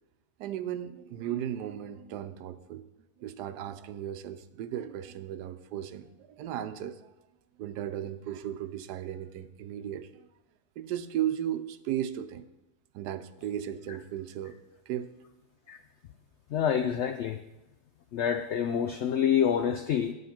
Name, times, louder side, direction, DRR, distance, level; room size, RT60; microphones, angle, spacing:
voice 1, 0.4-2.8 3.2-7.1 7.6-10.3 10.8-12.5 12.9-14.6 14.9-15.1, right 11 dB, 80° right, 12 dB, 1.2 m, -35 dB
voice 2, 16.5-17.4 18.1-20.1, left 8 dB, 80° left, 7 dB, 0.6 m, -27 dB
10.5 x 8.5 x 4.4 m, 0.98 s
omnidirectional pair, 1.7 m